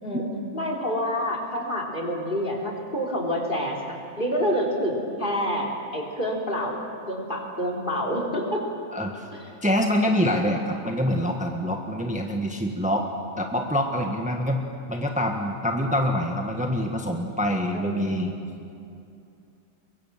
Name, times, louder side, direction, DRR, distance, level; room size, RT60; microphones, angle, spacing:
voice 1, 0.0-6.8 7.1-8.6 9.3-9.4 17.7-18.3, equal, 40° left, 1 dB, 3.7 m, -28 dB
voice 2, 8.9-9.3 9.6-13.1 13.4-14.6 14.9-18.3, equal, 5° right, 2 dB, 1.4 m, -25 dB
24.0 x 23.0 x 7.4 m, 2.6 s
omnidirectional pair, 1.3 m